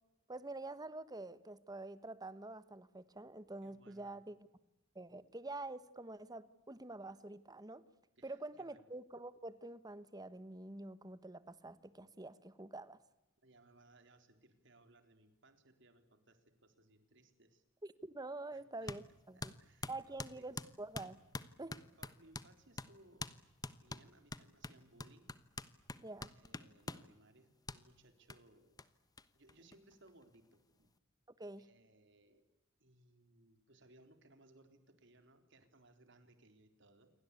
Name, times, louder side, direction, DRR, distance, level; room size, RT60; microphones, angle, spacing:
voice 1, 0.3-4.4 4.9-7.8 8.2-13.0 17.8-19.5 19.9-21.2 21.6-21.8 26.0-26.3 31.4-31.7, right 2 dB, 20° right, 15 dB, 1.2 m, -47 dB
voice 2, 3.6-4.2 8.2-8.9 13.4-17.6 18.5-18.9 19.3-20.5 22.0-23.3 23.8-25.4 26.3-28.8 29.3-31.0 31.6-32.5 32.8-37.1, right 2 dB, 65° right, 8 dB, 3.9 m, -65 dB
sound 1, 18.9-19.0 19.4-22.5 22.8-22.9 23.2-23.4 23.6-27.1 27.7-27.8 28.3-28.4 28.8-28.9 29.2-29.3 29.5-30.2, left 3 dB, 20° left, 1.1 m, -45 dB
28.5 x 23.5 x 8.5 m, 0.94 s
head